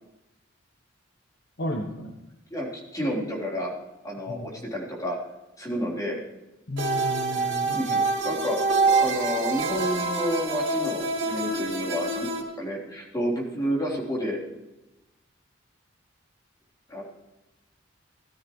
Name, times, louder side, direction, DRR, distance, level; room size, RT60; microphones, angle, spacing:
voice 1, 1.6-2.2 4.3-4.5 6.7-8.0, left 1 dB, 60° left, 2 dB, 1.1 m, -33 dB
voice 2, 2.5-3.7 4.0-5.2 5.6-6.2 7.3-12.3 12.6-14.4 16.9-17.0, equal, 20° left, -4 dB, 3.7 m, -30 dB
sound 1, 6.8-12.4, right 3 dB, 65° right, 2.7 m, -26 dB
17.5 x 13.0 x 3.2 m, 0.98 s
head